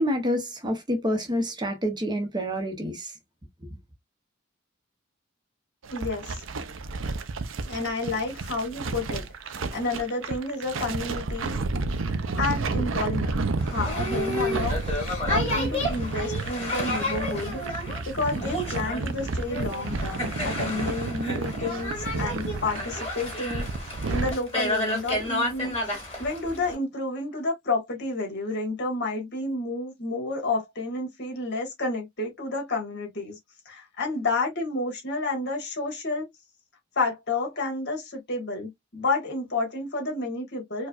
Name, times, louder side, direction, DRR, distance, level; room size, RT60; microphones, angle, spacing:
voice 1, 0.0-3.1, equal, 20° right, 0.8 m, -27 dB
sound 1, 5.8-24.3, right 3 dB, 80° right, 0.6 m, -31 dB
voice 2, 5.9-6.4 7.6-9.3 9.7-11.6 12.4-13.4 13.7-14.8 15.0-17.6 18.1-23.7 24.1-25.7 26.2-33.4 33.7-36.3 37.0-40.9, left 2 dB, 55° left, 1.7 m, -30 dB
Boat Water vehicle, 13.6-26.7, left 1 dB, 30° left, 2.4 m, -31 dB
4.6 x 2.3 x 2.4 m
head